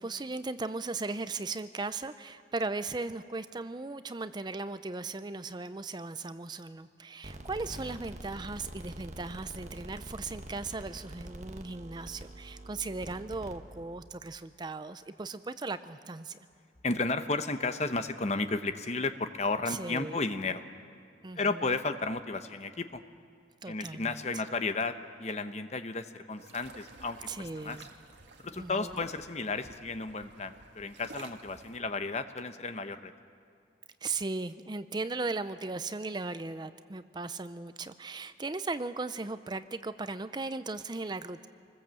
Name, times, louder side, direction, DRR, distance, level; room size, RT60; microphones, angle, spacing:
voice 1, 0.0-16.4 19.7-20.2 21.2-21.4 23.6-24.2 27.3-27.9 28.5-29.0 34.0-41.5, right 3 dB, 25° right, 12 dB, 0.5 m, -37 dB
sound 1, 7.2-14.1, right 1 dB, 40° right, 1.4 m, -45 dB
voice 2, 16.8-20.6 21.4-23.0 23.7-27.9 28.4-33.1, left 3 dB, 40° left, 9 dB, 0.9 m, -33 dB
sound 2, 26.4-31.8, right 3 dB, 85° right, 1.6 m, -53 dB
26.5 x 20.0 x 7.7 m, 2.3 s
head